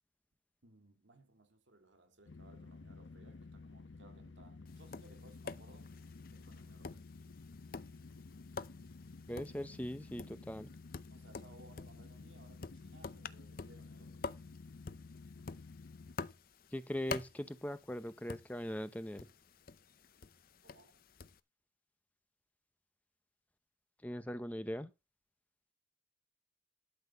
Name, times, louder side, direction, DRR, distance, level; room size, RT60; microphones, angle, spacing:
voice 1, 0.6-5.9 6.3-7.1 11.1-14.3 20.6-21.0, right 2 dB, 90° right, 2.2 m, -62 dB
sound 1, 2.3-16.2, left 3 dB, 85° left, 0.7 m, -53 dB
Tap, 4.7-21.4, left 4 dB, 50° left, 0.6 m, -49 dB
voice 2, 9.3-10.7 16.7-19.3 24.0-24.9, equal, 10° left, 0.7 m, -40 dB
12.0 x 4.3 x 6.8 m
head